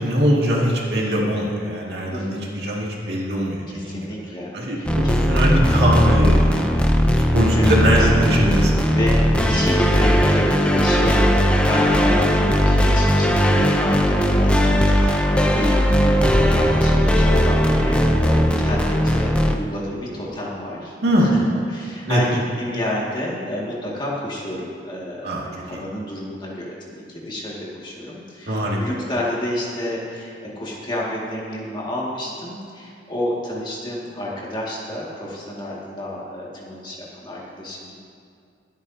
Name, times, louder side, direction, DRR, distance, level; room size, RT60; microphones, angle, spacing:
voice 1, 0.0-4.1 4.5-9.0 21.0-21.3 22.1-22.4 25.2-25.8 28.5-28.8, equal, 65° right, -3 dB, 2.2 m, -22 dB
voice 2, 2.1-2.4 3.7-5.2 7.5-8.1 8.9-20.9 21.2-21.4 21.7-37.9, left 1 dB, 25° left, -5 dB, 2.1 m, -30 dB
sound 1, 4.9-19.6, equal, 5° left, 0.6 m, -18 dB
22.0 x 8.9 x 2.8 m, 2.3 s
head